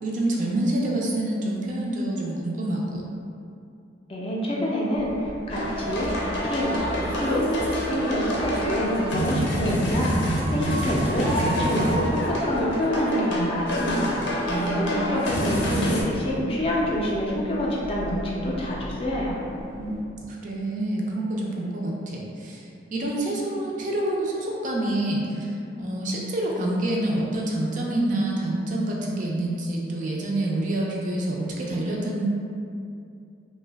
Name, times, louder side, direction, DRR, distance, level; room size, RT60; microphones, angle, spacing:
voice 1, 0.0-3.1 14.5-14.8 19.8-19.9 20.3-22.6 22.9-32.3, right 1 dB, 45° right, -3 dB, 0.4 m, -27 dB
voice 2, 4.1-6.1 6.4-6.8 7.1-7.5 7.8-10.1 10.5-14.2 14.7-19.4, left 1 dB, 30° left, -4 dB, 0.4 m, -26 dB
sound 1, 4.9-20.0, equal, 70° right, 0.8 m, -40 dB
sound 2, 5.5-16.0, equal, 90° left, 0.5 m, -27 dB
2.6 x 2.2 x 3.3 m, 2.5 s
head